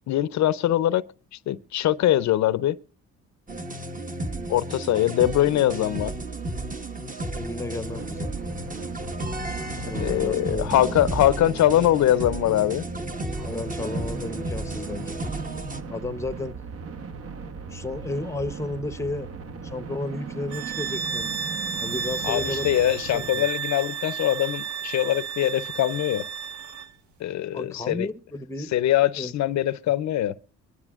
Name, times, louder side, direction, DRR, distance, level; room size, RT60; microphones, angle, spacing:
voice 1, 0.1-1.0 1.3-2.8 4.5-6.1 10.0-12.9 22.2-26.2 27.2-28.1 28.7-30.3, left 12 dB, 65° left, 0.5 m, -22 dB
sound 1, 3.5-15.8, right 1 dB, 25° right, 1.3 m, -33 dB
voice 2, 7.3-8.3 9.8-10.9 13.4-15.2 15.9-16.5 17.7-19.3 19.6-21.3 21.8-22.8 23.1-23.5 27.5-28.7 29.2-29.3, left 2 dB, 10° left, 0.8 m, -33 dB
sound 2, 7.8-23.3, right 5 dB, 50° right, 1.0 m, -38 dB
sound 3, 20.5-26.9, right 6 dB, 70° right, 1.2 m, -32 dB
23.5 x 11.0 x 2.4 m
cardioid pair, 90°, 30 cm